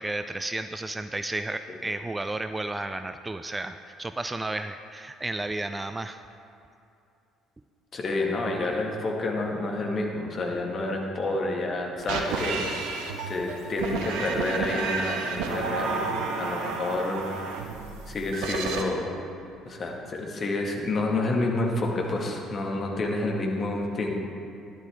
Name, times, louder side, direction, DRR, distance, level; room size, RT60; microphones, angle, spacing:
voice 1, 0.0-6.2, right 2 dB, 15° right, 9 dB, 0.4 m, -32 dB
voice 2, 7.9-12.7 13.3-17.5 18.1-19.1 19.6-24.1, left 2 dB, 40° left, 0 dB, 1.8 m, -29 dB
sound 1, 12.0-18.8, right 4 dB, 65° right, 1.0 m, -31 dB
12.5 x 11.5 x 3.6 m, 2.6 s
figure-of-eight pair, 50°, 0 cm